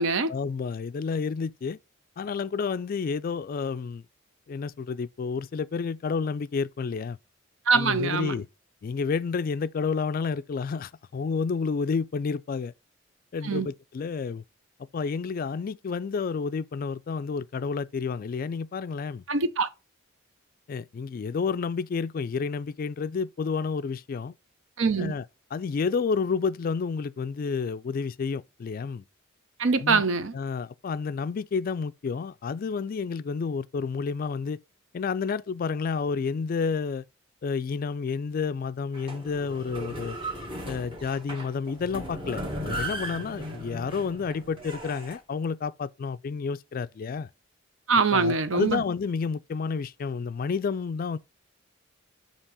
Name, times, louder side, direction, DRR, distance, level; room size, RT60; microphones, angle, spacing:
voice 1, 0.3-1.8 2.2-4.0 4.5-7.2 7.7-8.5 8.8-12.7 13.3-14.4 14.9-19.2 20.7-24.3 25.0-25.3 25.5-29.0 29.8-30.0 30.3-34.6 34.9-37.0 37.4-40.2 40.7-47.3 48.1-51.2, left 5 dB, 45° left, 0.3 m, -30 dB
voice 2, 7.7-8.3 13.4-13.7 19.3-19.7 24.8-25.1 29.6-30.3 47.9-48.8, right 4 dB, 70° right, 0.7 m, -23 dB
sound 1, 38.9-45.2, right 1 dB, 25° right, 1.6 m, -36 dB
7.2 x 2.9 x 4.8 m
head